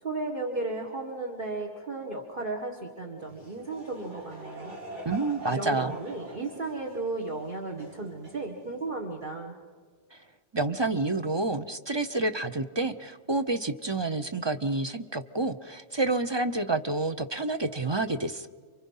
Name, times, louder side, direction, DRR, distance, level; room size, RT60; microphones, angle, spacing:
voice 1, 0.0-4.7 5.5-9.5, right 2 dB, 45° right, 0 dB, 1.9 m, -34 dB
Laughter / Crowd, 3.2-8.9, equal, 90° right, 4.5 m, -45 dB
voice 2, 5.0-6.0 10.5-18.5, right 2 dB, 25° right, 9 dB, 0.7 m, -29 dB
28.5 x 24.5 x 5.6 m, 1.5 s
omnidirectional pair, 1.2 m